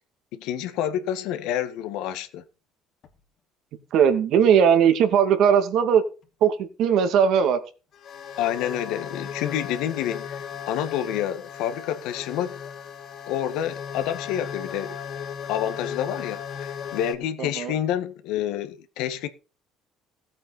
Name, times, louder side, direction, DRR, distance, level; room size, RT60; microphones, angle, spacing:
voice 1, 0.3-2.4 8.4-10.4 10.7-12.6 13.3-15.0 15.5-19.3, left 10 dB, 80° left, 1.7 m, -28 dB
sound 1, 3.0-3.1 4.4-4.5 5.1-5.2 6.2-6.3 7.9-17.1, left 8 dB, 50° left, 2.8 m, -36 dB
voice 2, 3.9-6.0 6.4-7.6 17.4-17.7, right 8 dB, 65° right, 2.4 m, -19 dB
15.5 x 8.7 x 4.3 m
cardioid pair, 110°, 0 cm